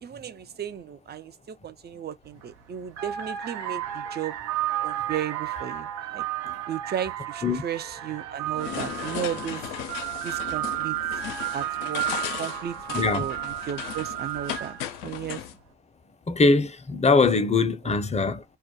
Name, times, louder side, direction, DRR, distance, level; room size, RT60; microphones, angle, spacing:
voice 1, 0.0-4.4 4.8-6.2 6.7-9.7 10.2-11.0 11.5-12.1 12.4-15.4 17.8-17.9, right 9 dB, 30° right, 0.5 m, -35 dB
sound 1, 2.3-2.5 2.9-15.0, right 13 dB, 75° right, 0.6 m, -32 dB
sound 2, 8.5-15.5, left 11 dB, 80° left, 0.5 m, -36 dB
voice 2, 12.9-13.2 16.3-18.4, left 3 dB, 20° left, 0.6 m, -22 dB
2.3 x 2.1 x 2.8 m
hypercardioid pair, 55°, 34 cm